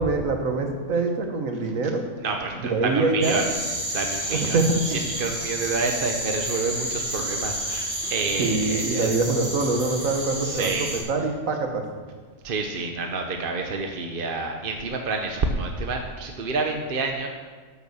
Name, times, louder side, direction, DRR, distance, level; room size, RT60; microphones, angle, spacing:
voice 1, 0.0-2.0 2.6-3.4 4.3-5.0 8.4-11.9, right 3 dB, 85° right, 4 dB, 1.7 m, -24 dB
voice 2, 2.2-3.5 3.9-4.6 4.9-9.2 10.4-10.9 12.4-17.3, right 3 dB, 45° right, 3 dB, 1.0 m, -28 dB
sound 1, 3.2-11.0, right 1 dB, 65° right, 4.5 m, -30 dB
11.0 x 6.9 x 7.0 m, 1.5 s
omnidirectional pair, 1.4 m